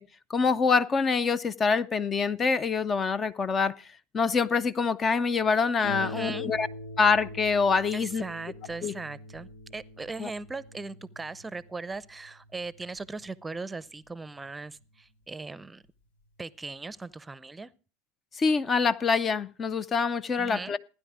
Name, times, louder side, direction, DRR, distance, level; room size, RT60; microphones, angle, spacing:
voice 1, 0.3-3.9 4.1-6.7 7.0-8.2 8.8-8.9 10.2-10.3 18.4-20.8, left 5 dB, 30° left, 0.6 m, -25 dB
Harp, 5.8-15.0 15.9-16.0 16.4-16.5, left 1 dB, 80° left, 1.9 m, -44 dB
voice 2, 6.0-6.5 7.9-15.8 16.4-17.7 20.4-20.7, right 3 dB, 15° right, 0.7 m, -39 dB
16.0 x 10.0 x 5.0 m
hypercardioid pair, 80°, 0 cm